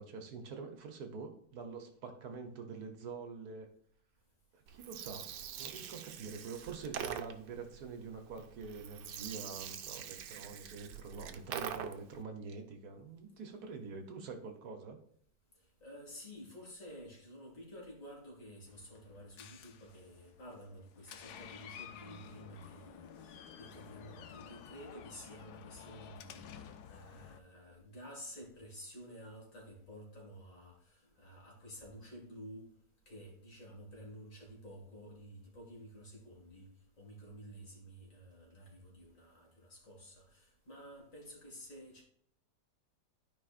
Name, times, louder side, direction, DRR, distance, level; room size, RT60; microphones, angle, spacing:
voice 1, 0.0-3.7 4.5-5.3 5.6-15.0, right 4 dB, 65° right, 1.5 m, -46 dB
Gurgling, 4.7-12.2, right 9 dB, 85° right, 1.3 m, -44 dB
voice 2, 15.8-32.7 33.1-36.7 37.0-42.0, equal, 50° left, 2.4 m, -51 dB
Door, 18.7-27.4, left 8 dB, 75° left, 1.1 m, -52 dB
12.5 x 5.0 x 2.5 m
omnidirectional pair, 1.8 m